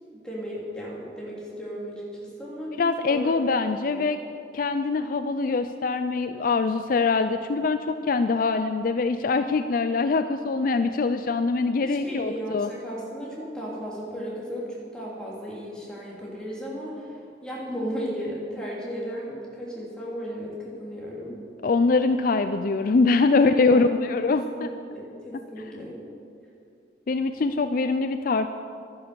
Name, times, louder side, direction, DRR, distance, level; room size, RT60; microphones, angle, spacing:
voice 1, 0.2-3.4 3.8-4.0 11.8-21.4 23.6-23.9 24.3-24.6 24.9-26.0, equal, 5° left, -6 dB, 3.1 m, -35 dB
voice 2, 2.8-4.2 4.5-12.7 21.6-24.7 27.1-28.5, left 4 dB, 50° left, 10 dB, 0.4 m, -23 dB
12.0 x 10.5 x 6.9 m, 2.4 s
head